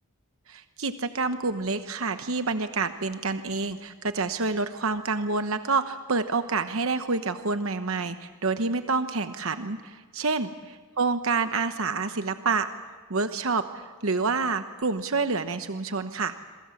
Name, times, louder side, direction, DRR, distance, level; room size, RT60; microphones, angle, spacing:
voice 1, 0.5-10.5 11.0-12.7 13.1-16.3, right 4 dB, 65° right, 9 dB, 1.0 m, -28 dB
27.5 x 23.5 x 7.2 m, 1.4 s
head